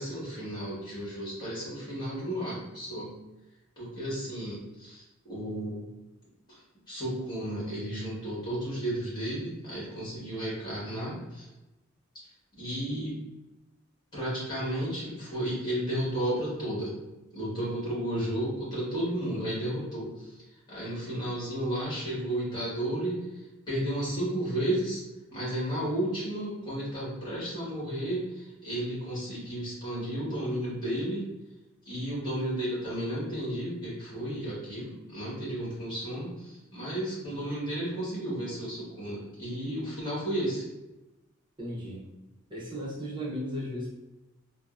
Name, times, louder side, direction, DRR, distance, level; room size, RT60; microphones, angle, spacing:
voice 1, 0.0-3.2 3.8-5.8 6.5-6.6 6.9-11.5 12.5-13.2 14.1-17.0 17.3-20.4 20.7-25.0 25.3-31.3 31.8-40.6, right 1 dB, 20° left, -8 dB, 1.3 m, -33 dB
voice 2, 41.6-42.0 42.5-43.9, equal, 25° right, -6 dB, 0.7 m, -35 dB
3.6 x 2.0 x 2.4 m, 1.0 s
head